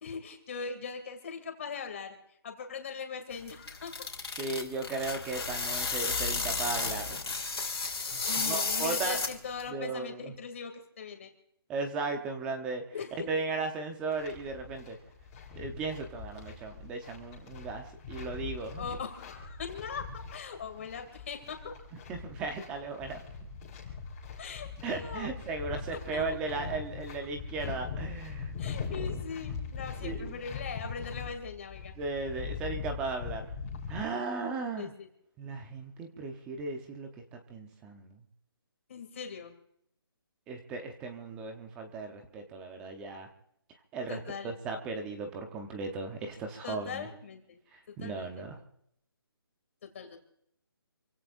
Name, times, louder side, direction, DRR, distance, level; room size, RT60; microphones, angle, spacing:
voice 1, 0.0-2.2 2.4-3.9 8.3-11.3 12.9-13.3 18.8-21.7 24.4-25.3 26.1-26.2 26.5-26.6 28.6-31.9 34.8-35.1 38.9-39.5 44.1-44.5 46.6-47.6 47.9-48.4 49.8-50.2, left 5 dB, 30° left, 5 dB, 2.6 m, -40 dB
sound 1, 3.3-9.7, left 4 dB, 80° left, 3.2 m, -33 dB
voice 2, 4.4-7.2 8.1-9.2 9.7-10.4 11.7-12.8 13.3-15.0 15.6-19.0 22.1-23.2 24.8-28.5 30.0-30.4 32.0-33.5 33.9-34.9 35.4-37.1 37.5-38.2 40.5-43.3 43.9-47.1 47.7-48.6, right 3 dB, 5° right, 5 dB, 0.8 m, -36 dB
sound 2, 14.1-34.0, left 5 dB, 15° left, 3.6 m, -41 dB
28.0 x 16.5 x 2.6 m, 0.72 s
hypercardioid pair, 170°, 13 cm